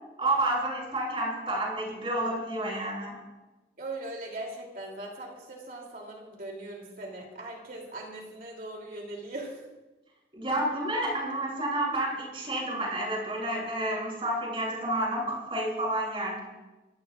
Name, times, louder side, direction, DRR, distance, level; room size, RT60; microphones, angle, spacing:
voice 1, 0.2-3.2 10.3-16.4, right 1 dB, 30° right, -3 dB, 7.1 m, -30 dB
voice 2, 3.8-9.6, right 2 dB, 50° right, 0 dB, 3.0 m, -40 dB
26.0 x 17.5 x 2.5 m, 1.1 s
head